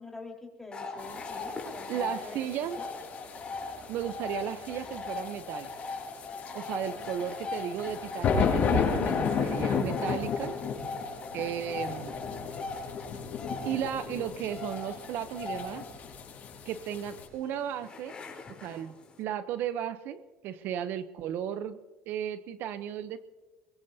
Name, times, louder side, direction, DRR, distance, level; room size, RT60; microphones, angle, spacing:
voice 1, 0.0-2.5 2.8-2.9, left 3 dB, 10° left, 0 dB, 4.2 m, -45 dB
sound 1, 0.7-19.2, left 3 dB, 25° left, 3.9 m, -40 dB
sound 2, 1.0-17.3, left 5 dB, 45° left, 5.6 m, -34 dB
voice 2, 1.9-2.8 3.9-5.7 6.5-10.5 11.3-12.2 13.6-15.8 16.7-18.1 18.6-21.8 22.1-23.2, right 9 dB, 60° right, 12 dB, 0.7 m, -35 dB
22.5 x 22.0 x 2.8 m, 1.3 s
cardioid pair, 120°, 4 cm